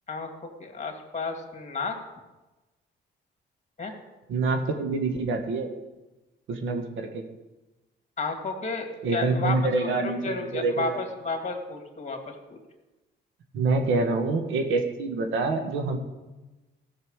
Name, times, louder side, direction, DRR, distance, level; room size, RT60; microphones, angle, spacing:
voice 1, 0.1-2.0 3.8-3.9 8.2-12.2 12.5-12.6, left 4 dB, 35° left, 4 dB, 2.4 m, -32 dB
voice 2, 4.3-5.7 6.5-7.2 9.0-11.0 13.5-16.0, right 3 dB, 80° right, 5 dB, 1.7 m, -26 dB
14.5 x 6.7 x 6.5 m, 1.1 s
cardioid pair, 90°, 20 cm